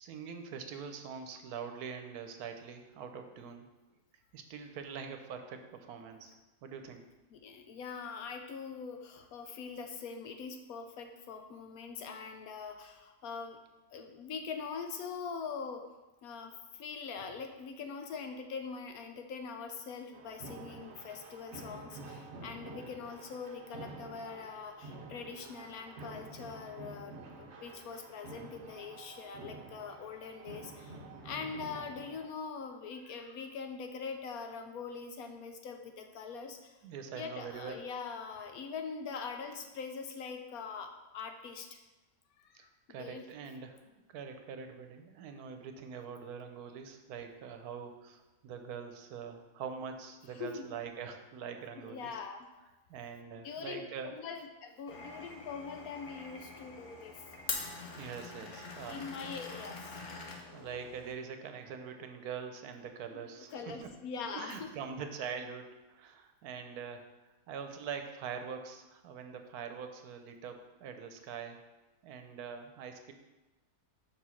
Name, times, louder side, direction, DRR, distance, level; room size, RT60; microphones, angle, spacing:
voice 1, 0.0-3.7 4.3-6.4 6.6-7.0 36.8-37.9 42.5-52.2 52.6-54.2 57.9-59.3 60.2-63.9 64.3-67.1 67.5-71.6 72.0-73.1, right 6 dB, 80° right, 6 dB, 1.2 m, -44 dB
voice 2, 7.3-13.6 13.9-15.8 16.2-36.7 37.1-41.8 42.4-43.3 45.3-45.4 50.2-50.7 51.8-52.5 53.4-57.2 58.9-60.0 63.1-64.8, left 5 dB, 75° left, 5 dB, 1.0 m, -43 dB
sound 1, 20.1-32.3, right 3 dB, 55° right, 0.9 m, -49 dB
Glass, 54.9-61.1, left 4 dB, 55° left, 1.2 m, -44 dB
5.4 x 4.8 x 5.6 m, 1.1 s
omnidirectional pair, 1.6 m